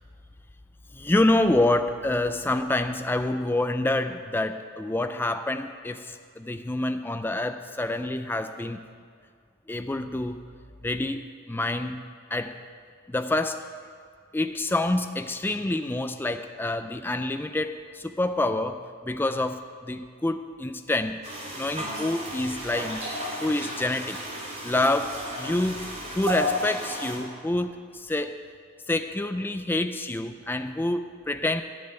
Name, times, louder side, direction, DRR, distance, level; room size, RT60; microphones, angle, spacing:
voice 1, 0.9-8.9 9.7-10.4 10.8-11.2 11.5-12.0 12.3-12.6 13.1-13.7 14.3-21.2 21.6-23.1 23.4-24.2 24.6-28.4 28.9-31.6, left 2 dB, 10° left, 8 dB, 0.3 m, -27 dB
sound 1, 21.2-27.2, equal, 30° right, 3.2 m, -33 dB
13.5 x 5.4 x 9.4 m, 2.1 s
head